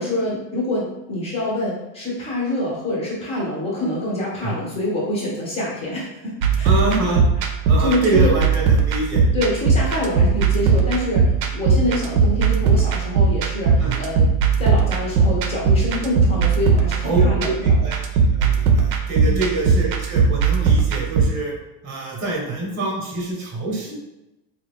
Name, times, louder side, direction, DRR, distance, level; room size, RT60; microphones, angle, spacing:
voice 1, 0.0-6.7 7.8-8.3 9.3-14.3 14.6-17.8 19.2-19.4, left 1 dB, 15° left, -4 dB, 0.6 m, -26 dB
sound 1, 6.4-21.2, right 5 dB, 85° right, 0.8 m, -18 dB
voice 2, 6.6-7.2 7.7-9.2 10.1-10.2 13.8-14.0 17.0-18.0 18.4-21.5 21.8-23.9, right 2 dB, 25° right, -2 dB, 0.9 m, -25 dB
4.0 x 2.4 x 3.4 m, 0.95 s
supercardioid pair, 175°, 48 cm